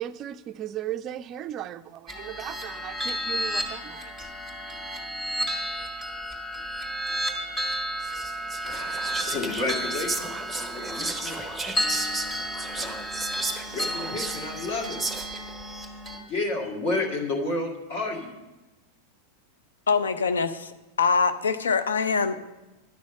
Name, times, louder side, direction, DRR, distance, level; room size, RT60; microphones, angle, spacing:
voice 1, 0.0-4.3, right 12 dB, 35° right, 14 dB, 0.4 m, -36 dB
sound 1, 2.1-16.2, equal, 15° left, 1.9 m, -32 dB
Whispering, 8.0-15.6, right 3 dB, 5° right, 0.8 m, -34 dB
voice 2, 8.6-11.4 12.7-13.1 13.5-15.0 16.1-18.4, left 2 dB, 50° left, 0 dB, 1.9 m, -31 dB
voice 3, 19.9-22.4, left 5 dB, 70° left, 10 dB, 0.6 m, -24 dB
10.5 x 6.2 x 7.3 m, 1.1 s
figure-of-eight pair, 90°, 0 cm